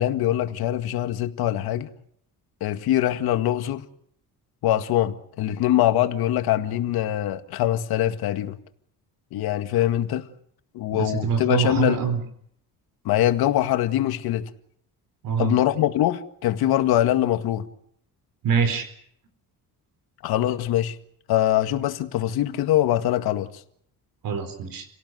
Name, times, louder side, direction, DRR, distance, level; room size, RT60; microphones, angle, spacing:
voice 1, 0.0-1.9 2.6-3.9 4.6-8.6 9.3-10.3 10.7-12.0 13.1-14.5 15.4-17.7 20.2-21.0 21.3-23.5, left 12 dB, 85° left, 2.0 m, -23 dB
voice 2, 10.9-12.2 15.2-15.5 18.4-18.9 24.2-24.9, right 6 dB, 65° right, 4.3 m, -24 dB
29.5 x 18.0 x 7.9 m
cardioid pair, 150°, 37 cm